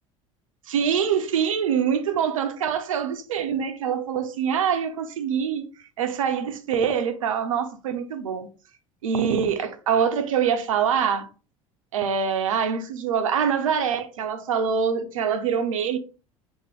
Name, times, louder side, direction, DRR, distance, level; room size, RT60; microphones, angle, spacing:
voice 1, 0.7-5.7 6.0-8.5 9.0-11.3 11.9-16.0, right 7 dB, 80° right, 0.6 m, -24 dB
3.5 x 2.5 x 3.3 m
hypercardioid pair, 70°, 17 cm